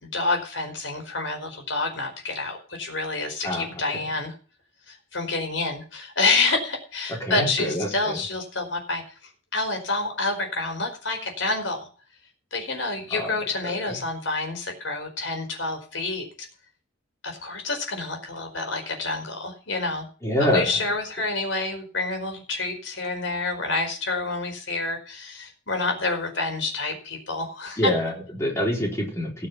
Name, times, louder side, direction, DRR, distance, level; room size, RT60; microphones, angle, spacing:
voice 1, 0.0-4.3 4.9-9.0 9.5-11.8 12.5-16.5 17.2-20.1 20.4-27.9, left 3 dB, 80° left, 4 dB, 4.7 m, -28 dB
voice 2, 7.2-8.2 13.1-13.3 13.9-14.0 20.2-20.7 27.8-29.5, equal, 15° left, -2 dB, 4.3 m, -25 dB
18.0 x 6.6 x 6.0 m, 0.40 s
head